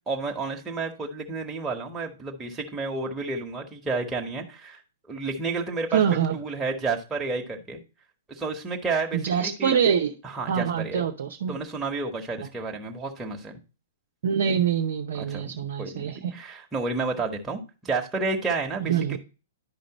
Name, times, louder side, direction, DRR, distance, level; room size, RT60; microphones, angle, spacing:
voice 1, 0.1-4.8 5.1-7.8 8.3-9.7 10.2-11.0 11.5-13.6 15.1-15.5 15.8-19.2, right 3 dB, 15° right, 0 dB, 1.3 m, -31 dB
voice 2, 5.9-6.4 9.1-10.1 10.5-11.6 14.2-16.4 18.8-19.2, right 8 dB, 60° right, 2 dB, 0.7 m, -25 dB
10.5 x 5.2 x 3.0 m, 0.33 s
figure-of-eight pair, 110°, 0 cm